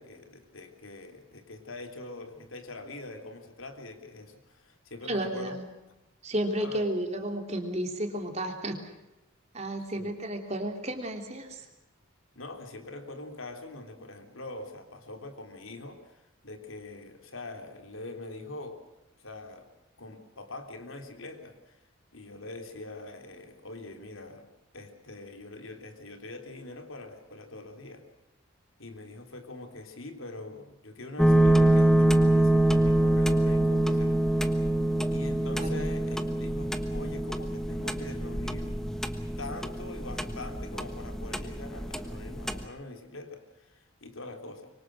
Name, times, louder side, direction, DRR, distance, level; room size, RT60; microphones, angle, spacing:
voice 1, 0.0-5.6 6.6-6.8 9.9-10.1 12.4-18.8 19.2-19.7 20.0-21.8 22.1-24.5 24.7-28.0 28.8-34.6 35.1-38.8 39.4-44.7, left 2 dB, 80° left, 5 dB, 3.5 m, -43 dB
voice 2, 5.1-5.6 6.2-8.8 9.5-11.6 35.6-35.8, right 1 dB, 30° right, 4 dB, 3.1 m, -32 dB
sound 1, 31.2-42.7, right 1 dB, ahead, 1.2 m, -25 dB
25.5 x 24.0 x 6.4 m, 0.97 s
head